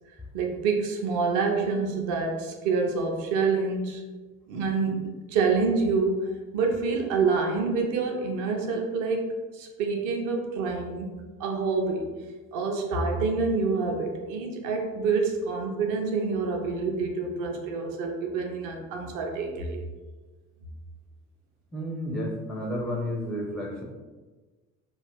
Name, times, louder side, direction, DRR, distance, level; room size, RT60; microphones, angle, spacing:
voice 1, 0.3-4.0 4.5-11.1 11.4-12.1 12.5-19.8, right 4 dB, 45° right, 2 dB, 0.6 m, -27 dB
voice 2, 21.7-23.8, equal, ahead, 0 dB, 0.4 m, -31 dB
2.4 x 2.3 x 3.4 m, 1.3 s
figure-of-eight pair, 55°, 43 cm